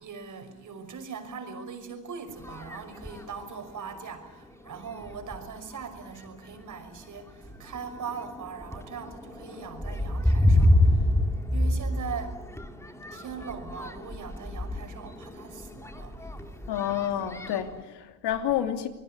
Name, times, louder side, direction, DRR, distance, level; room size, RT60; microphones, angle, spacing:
voice 1, 0.0-11.1 11.5-12.4 13.1-16.2 16.6-16.8, right 6 dB, 40° right, 5.8 m, -40 dB
sound 1, 2.3-3.3 4.1-4.2 4.7-4.9 5.2-5.8 6.5-6.7 7.2-17.8, left 1 dB, 5° left, 2.3 m, -28 dB
voice 2, 16.7-18.9, left 10 dB, 60° left, 2.9 m, -29 dB
27.0 x 20.5 x 8.4 m
supercardioid pair, 95°, 46 cm